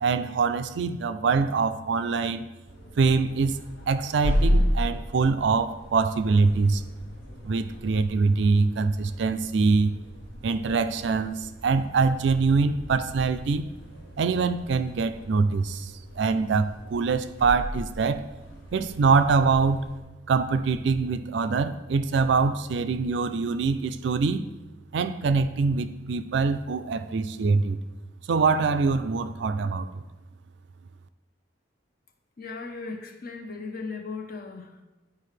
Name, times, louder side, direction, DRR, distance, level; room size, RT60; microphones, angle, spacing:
voice 1, 0.0-2.5 3.0-3.6 3.9-6.8 7.4-9.9 10.4-13.6 14.2-18.2 18.7-19.9 20.3-24.5 24.9-27.8 28.3-30.0, right 4 dB, 65° right, 11 dB, 0.4 m, -24 dB
sound 1, 2.7-20.0, equal, 75° left, 1.2 m, -34 dB
voice 2, 32.4-34.8, left 4 dB, 50° left, 5 dB, 0.8 m, -37 dB
10.5 x 4.8 x 3.2 m, 1.1 s
head